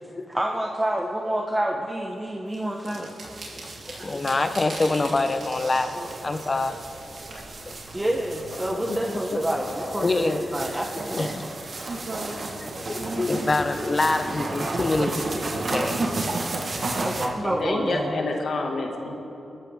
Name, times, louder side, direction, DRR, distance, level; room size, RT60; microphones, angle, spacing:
voice 1, 0.3-3.1 7.9-11.4 17.0-18.2, right 1 dB, 15° right, 1 dB, 1.0 m, -28 dB
sound 1, 2.5-9.4, right 3 dB, 75° right, 3.5 m, -43 dB
sound 2, 3.2-17.3, right 2 dB, 45° right, 1.5 m, -33 dB
voice 2, 3.5-7.8 10.0-11.4 12.0-17.1, left 2 dB, 35° left, 8 dB, 1.0 m, -27 dB
voice 3, 9.3-10.1 17.4-19.2, left 3 dB, 65° left, 1 dB, 2.1 m, -30 dB
21.5 x 13.5 x 3.7 m, 2.8 s
cardioid pair, 85°, 0 cm